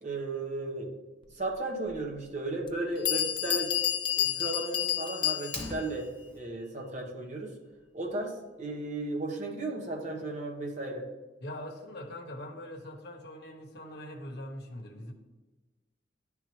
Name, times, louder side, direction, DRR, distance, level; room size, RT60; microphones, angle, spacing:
voice 1, 0.0-0.9 1.3-3.7 4.1-6.1 6.3-7.5 7.9-11.1, right 2 dB, 40° right, 0 dB, 1.1 m, -35 dB
Bell, 1.9-2.0 2.7-2.8 3.1-5.9, left 11 dB, 25° left, 0.3 m, -30 dB
Fire, 5.4-6.4, left 1 dB, 10° left, 1.1 m, -40 dB
voice 2, 11.4-15.1, left 1 dB, 60° left, 3 dB, 0.9 m, -42 dB
10.5 x 3.6 x 3.1 m, 1.2 s
head